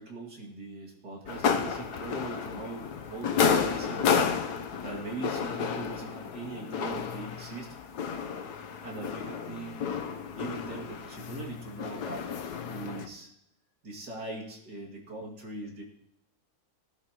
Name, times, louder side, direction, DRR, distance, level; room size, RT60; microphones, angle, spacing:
voice 1, 0.0-4.3 4.8-7.7 8.8-10.1 10.3-12.3 12.6-13.3 13.8-15.8, right 3 dB, 90° right, -2 dB, 3.0 m, -41 dB
sound 1, 1.3-13.1, left 6 dB, 85° left, 1.4 m, -31 dB
18.5 x 12.0 x 3.0 m, 0.81 s
omnidirectional pair, 1.7 m